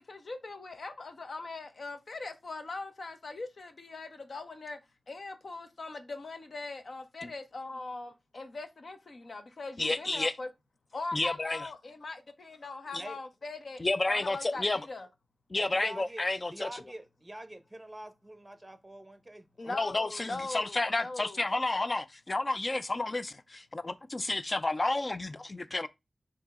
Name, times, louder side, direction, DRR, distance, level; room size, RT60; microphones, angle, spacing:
voice 1, 0.0-4.8 5.1-10.5 10.9-15.1 19.6-21.4, left 3 dB, 60° left, 0.8 m, -41 dB
voice 2, 9.8-10.3 11.1-11.7 12.9-13.0 13.8-14.8 15.5-16.8 19.7-25.9, left 2 dB, 35° left, 0.4 m, -31 dB
voice 3, 15.5-16.2 16.5-19.9, right 1 dB, 15° right, 0.7 m, -46 dB
4.5 x 2.8 x 4.1 m
wide cardioid pair, 85°, 0 cm